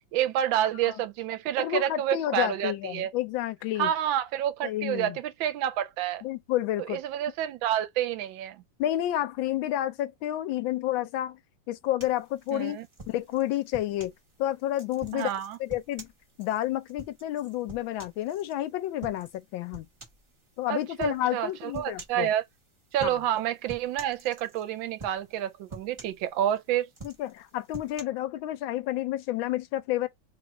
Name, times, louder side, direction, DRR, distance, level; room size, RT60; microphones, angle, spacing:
voice 1, 0.1-3.1 3.8-6.2 6.9-8.6 12.5-12.9 15.1-15.6 20.7-22.4 22.9-26.9, right 11 dB, 80° right, 1.3 m, -29 dB
voice 2, 1.6-3.9 4.6-5.2 6.2-7.0 8.8-11.4 11.7-12.8 13.1-14.1 14.4-15.3 15.6-16.1 16.4-19.9 20.6-22.3 23.0-23.2 27.0-30.1, left 13 dB, 80° left, 1.3 m, -30 dB
sound 1, 12.0-14.2 14.7-18.5 19.0-19.4 19.7-20.3 21.0-21.2 21.7-22.3 22.9-23.4 23.7-24.7 25.0-25.4 25.7-26.6 26.9-28.0, right 3 dB, 35° right, 0.5 m, -46 dB
3.3 x 2.4 x 3.9 m
omnidirectional pair, 2.1 m